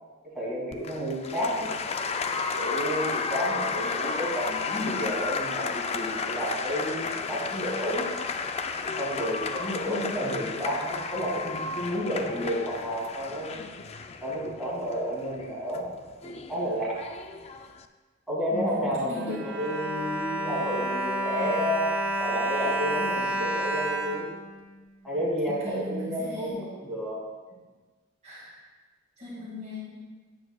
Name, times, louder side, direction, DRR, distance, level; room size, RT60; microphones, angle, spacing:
voice 1, 0.3-1.7 2.5-8.1 9.0-13.6 14.2-15.9 16.2-17.2 18.3-21.9 22.2-24.2 25.0-27.2, equal, ahead, -8 dB, 2.6 m, -31 dB
Applause, 0.7-17.8, left 5 dB, 30° left, 0.3 m, -33 dB
voice 2, 18.5-19.4 25.5-26.5 28.2-28.6 29.2-30.0, equal, 35° right, -6 dB, 2.0 m, -37 dB
Bowed string instrument, 18.9-25.1 25.8-25.9 26.2-26.4, right 1 dB, 90° right, 1.8 m, -30 dB
9.3 x 8.3 x 2.3 m, 1.3 s
head